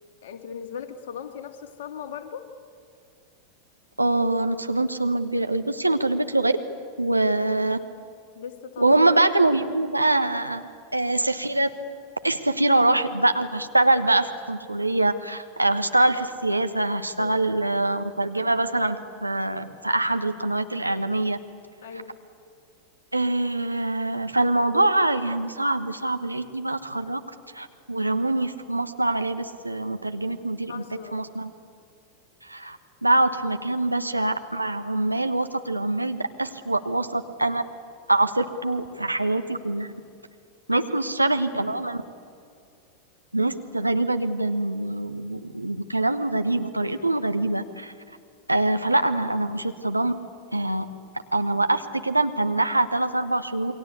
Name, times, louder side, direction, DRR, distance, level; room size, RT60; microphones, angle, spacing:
voice 1, 0.2-2.5 8.3-9.0 17.2-17.5 21.8-22.2 30.7-31.3 40.7-40.9 53.5-53.7, left 7 dB, 55° left, 6 dB, 2.3 m, -38 dB
voice 2, 4.0-6.6 7.0-7.8 8.8-11.7 12.2-21.4 23.1-27.2 27.5-30.8 31.1-31.5 32.4-37.6 38.1-39.9 40.7-42.0 43.3-47.9 48.5-50.1 50.5-50.9 51.3-53.7, right 2 dB, 85° right, 8 dB, 1.3 m, -24 dB
28.0 x 22.5 x 8.3 m, 2.4 s
figure-of-eight pair, 90°, 0 cm